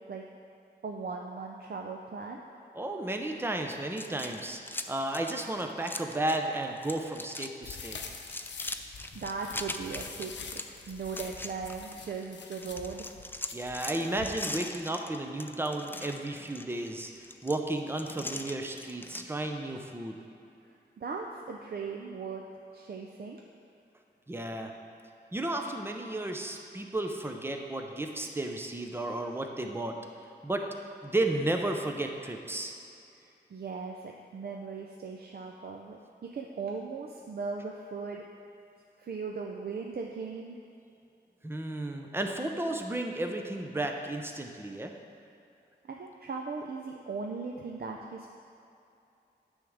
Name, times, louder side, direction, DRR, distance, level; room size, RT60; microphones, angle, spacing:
voice 1, 0.8-2.4 9.1-10.6 10.9-13.1 21.0-22.4 22.7-23.4 33.2-38.3 39.0-40.6 45.9-48.3, right 4 dB, 55° right, 1 dB, 0.5 m, -38 dB
voice 2, 2.7-4.6 4.9-8.0 13.5-17.1 17.4-20.2 24.3-24.7 25.3-29.9 30.4-30.6 31.0-32.7 41.4-44.9, right 1 dB, 10° right, 3 dB, 0.7 m, -33 dB
sound 1, 3.9-6.5 6.8-7.5 7.8-12.3 12.6-19.3, left 2 dB, 10° left, 0.4 m, -41 dB
sound 2, 7.6-14.3, left 5 dB, 75° left, 0.6 m, -45 dB
9.3 x 3.6 x 6.4 m, 2.7 s
wide cardioid pair, 80°, 18 cm